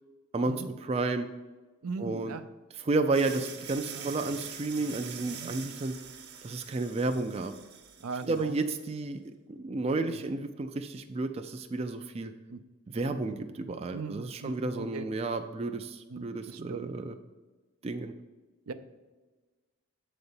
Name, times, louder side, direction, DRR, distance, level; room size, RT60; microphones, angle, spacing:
voice 1, 0.3-1.3 2.0-2.4 2.7-6.0 6.4-7.5 8.2-12.3 12.9-17.2 17.8-18.1, right 3 dB, 25° right, 7 dB, 0.3 m, -32 dB
voice 2, 1.8-2.4 3.9-4.1 5.4-5.5 8.0-8.5 10.2-10.3 12.5-12.6 13.0-13.2 13.9-15.1 16.1-17.1 18.7-18.8, right 4 dB, 85° right, 10 dB, 0.6 m, -40 dB
sound 1, 3.1-8.8, right 7 dB, 50° right, 0.9 m, -45 dB
7.8 x 4.0 x 6.8 m, 1.3 s
head